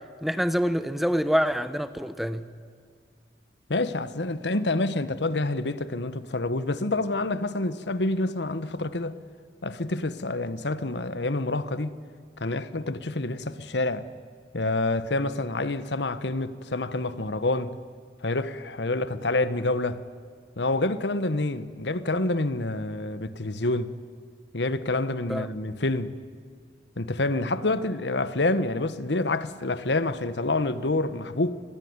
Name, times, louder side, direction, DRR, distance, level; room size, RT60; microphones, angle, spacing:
voice 1, 0.2-2.5 25.3-25.5, equal, ahead, 0.9 m, -26 dB
voice 2, 3.7-9.2 9.6-11.9 12.4-14.1 14.5-17.7 18.2-20.0 20.6-23.9 24.5-26.1 27.0-31.6, left 2 dB, 85° left, 1.2 m, -27 dB
28.0 x 21.5 x 9.7 m
head